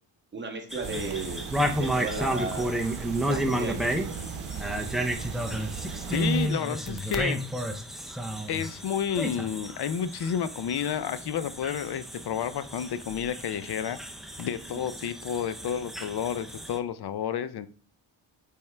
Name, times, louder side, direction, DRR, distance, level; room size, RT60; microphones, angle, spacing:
voice 1, 0.3-2.8 3.2-4.3 14.7-14.8, right 3 dB, 20° right, 2 dB, 1.2 m, -35 dB
sound 1, 0.7-16.8, right 1 dB, ahead, 0.4 m, -32 dB
sound 2, 0.8-6.5, right 6 dB, 75° right, 0.8 m, -38 dB
voice 2, 6.1-7.4 8.5-14.0 14.4-17.7, left 8 dB, 55° left, 13 dB, 0.5 m, -30 dB
8.6 x 3.6 x 3.2 m, 0.43 s
wide cardioid pair, 160°, 49 cm